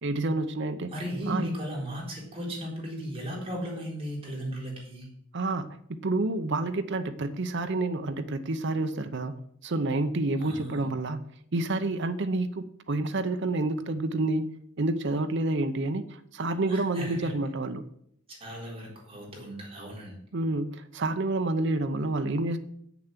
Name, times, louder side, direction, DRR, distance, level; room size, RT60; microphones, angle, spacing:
voice 1, 0.0-0.9 1.3-1.5 5.3-9.3 9.6-11.2 11.5-14.5 14.8-17.8 20.3-22.6, right 2 dB, 60° right, 9 dB, 0.7 m, -29 dB
voice 2, 0.9-5.1 10.4-10.8 16.7-17.3 18.3-20.2, equal, 30° right, -3 dB, 4.0 m, -36 dB
8.0 x 7.0 x 7.5 m, 0.69 s
head